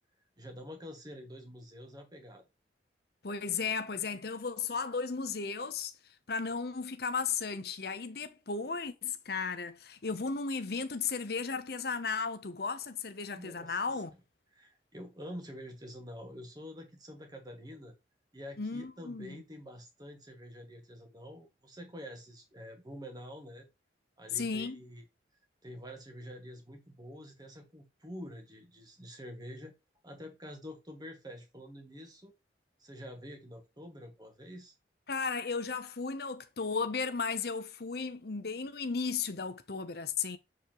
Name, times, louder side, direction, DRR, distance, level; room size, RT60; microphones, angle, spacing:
voice 1, 0.4-2.4 13.2-13.8 14.6-17.9 18.3-23.7 24.2-25.0 25.6-29.7 30.0-32.3 32.8-34.8, equal, 20° right, 2.1 m, -47 dB
voice 2, 3.2-14.1 18.6-19.4 24.3-24.8 35.1-40.4, left 5 dB, 55° left, 0.8 m, -35 dB
7.1 x 4.9 x 3.0 m
head